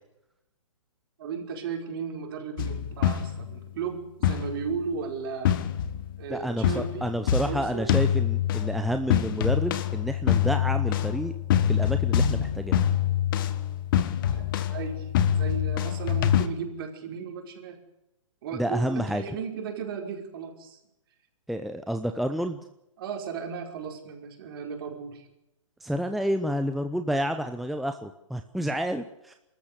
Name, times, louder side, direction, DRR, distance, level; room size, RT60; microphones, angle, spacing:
voice 1, 1.2-5.6 6.2-7.8 14.3-14.4 14.7-15.1 15.4-17.8 18.4-20.8 23.0-25.3, right 6 dB, 45° right, 4 dB, 5.3 m, -35 dB
sound 1, 2.6-3.6 4.2-4.9 5.4-6.3 6.6-16.5, left 9 dB, 40° left, 1.6 m, -25 dB
voice 2, 6.3-11.3 11.7-12.8 18.5-19.2 21.5-22.6 25.8-29.4, equal, ahead, 7 dB, 0.7 m, -29 dB
24.5 x 14.0 x 8.3 m, 0.88 s
hypercardioid pair, 135°, 17 cm